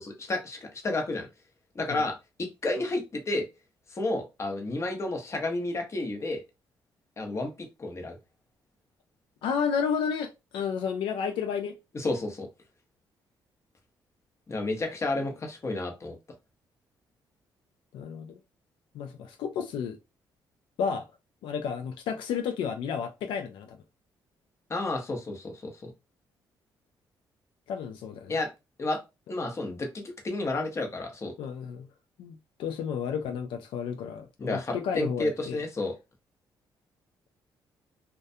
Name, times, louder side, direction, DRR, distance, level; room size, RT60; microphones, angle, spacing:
voice 1, 0.0-1.3 1.7-3.5 3.9-6.4 7.2-7.5 7.8-8.2 11.9-12.5 14.5-16.1 24.7-25.9 28.3-28.5 28.8-29.0 29.3-31.3 34.4-36.0, left 2 dB, 35° left, 0.8 m, -31 dB
voice 2, 9.4-11.7 15.2-15.3 17.9-18.4 18.9-20.0 20.8-21.0 21.4-23.8 27.7-28.4 31.4-31.9 32.2-35.6, left 7 dB, 80° left, 0.3 m, -32 dB
2.3 x 2.1 x 2.6 m
cardioid pair, 90°, 8 cm